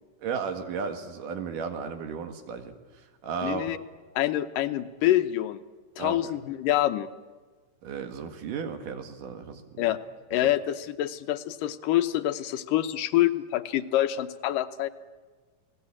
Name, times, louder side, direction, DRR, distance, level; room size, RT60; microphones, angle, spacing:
voice 1, 0.2-3.6 6.0-6.3 7.8-10.0, right 6 dB, 75° right, 7 dB, 3.4 m, -34 dB
voice 2, 3.4-3.8 4.2-5.6 6.0-7.1 9.8-10.0 10.3-14.9, left 13 dB, 85° left, 10 dB, 2.6 m, -26 dB
29.5 x 19.0 x 8.8 m, 1.4 s
omnidirectional pair, 3.8 m